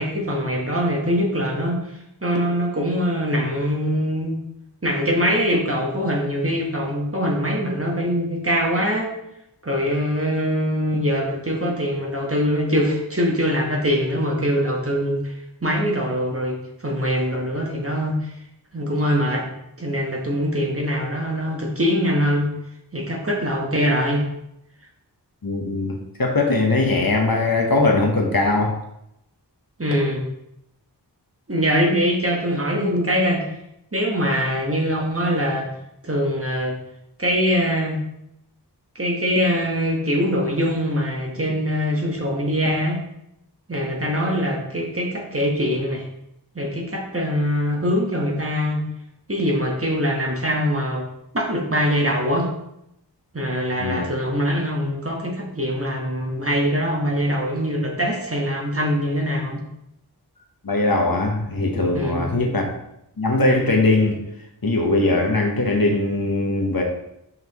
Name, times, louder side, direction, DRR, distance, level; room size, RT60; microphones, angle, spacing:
voice 1, 0.0-1.8 2.2-4.4 4.8-9.1 9.6-15.3 15.6-16.6 16.8-18.2 18.7-19.5 19.8-22.5 22.9-24.2 29.8-30.2 31.5-33.4 33.9-35.7 36.0-36.7 37.2-38.0 38.9-43.0 43.7-46.0 46.5-48.8 49.3-51.0 51.3-52.5 53.3-59.6 61.9-62.2, equal, 35° right, 0 dB, 1.3 m, -23 dB
voice 2, 25.4-28.7 53.8-54.0 60.6-62.7 63.2-64.2 64.6-66.8, left 2 dB, 55° left, 1 dB, 1.1 m, -20 dB
5.8 x 5.6 x 3.0 m, 0.81 s
wide cardioid pair, 50°, 41 cm